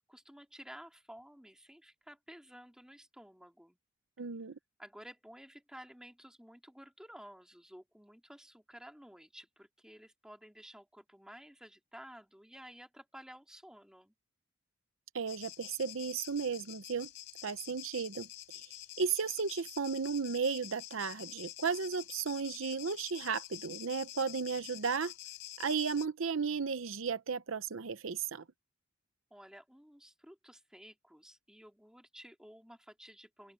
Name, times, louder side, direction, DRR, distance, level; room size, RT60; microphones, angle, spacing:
voice 1, 0.0-3.8 4.8-14.1 29.3-33.5, equal, 5° right, 2.4 m, -53 dB
voice 2, 4.2-4.6 15.1-17.1 17.4-18.3 18.5-18.7 19.0-25.1 25.6-28.4, right 5 dB, 75° right, 0.8 m, -34 dB
sound 1, 15.3-26.1, left 13 dB, 65° left, 4.0 m, -48 dB
open air
head